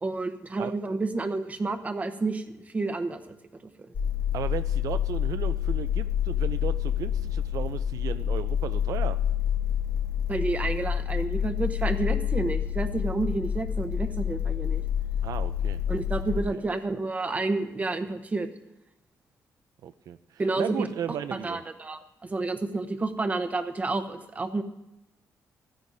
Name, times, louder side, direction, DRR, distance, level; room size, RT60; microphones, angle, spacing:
voice 1, 0.0-3.4 3.8-3.9 10.3-14.8 15.9-18.5 20.4-20.9 21.3-24.6, right 3 dB, 25° right, 8 dB, 0.9 m, -30 dB
sound 1, 3.9-16.4, left 9 dB, 75° left, 1.4 m, -28 dB
voice 2, 4.3-9.2 15.2-15.8 16.5-16.6 19.8-20.2 20.6-21.6, right 10 dB, 75° right, 11 dB, 0.4 m, -35 dB
14.5 x 14.0 x 2.7 m, 0.92 s
cardioid pair, 130°, 6 cm